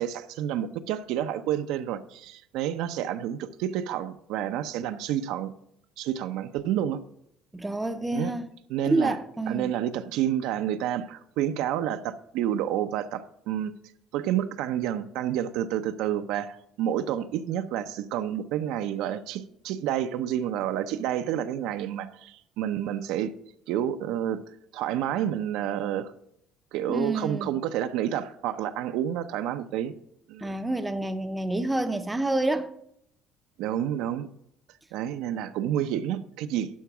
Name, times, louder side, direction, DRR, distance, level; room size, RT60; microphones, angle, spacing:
voice 1, 0.0-5.5 6.0-7.0 8.1-8.4 8.7-9.2 9.5-13.7 14.1-23.3 23.7-24.4 24.7-26.1 26.7-29.9 30.3-30.5 33.6-34.3 34.9-36.7, right 10 dB, 75° right, 0.6 m, -29 dB
voice 2, 7.5-8.5 8.9-9.7 26.9-27.5 30.4-32.7, right 2 dB, 10° right, 0.5 m, -28 dB
11.5 x 4.6 x 6.0 m
cardioid pair, 160°, 0 cm